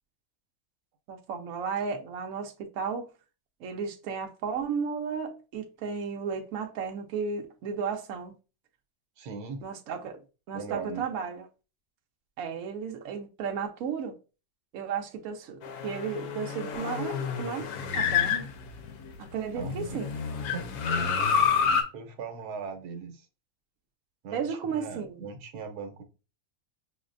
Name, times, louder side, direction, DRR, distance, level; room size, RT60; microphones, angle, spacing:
voice 1, 1.1-3.1 3.6-8.3 9.6-10.2 10.5-11.5 12.4-14.1 14.7-18.5 19.2-20.1 24.3-25.2, right 6 dB, 65° right, 1.0 m, -34 dB
voice 2, 9.2-9.6 10.5-11.1 19.5-20.0 20.4-21.1 21.9-23.3 24.2-26.0, right 5 dB, 90° right, 1.3 m, -39 dB
sound 1, 15.6-19.1 19.6-21.8, left 6 dB, 80° left, 1.1 m, -28 dB
6.2 x 2.1 x 2.5 m
omnidirectional pair, 1.6 m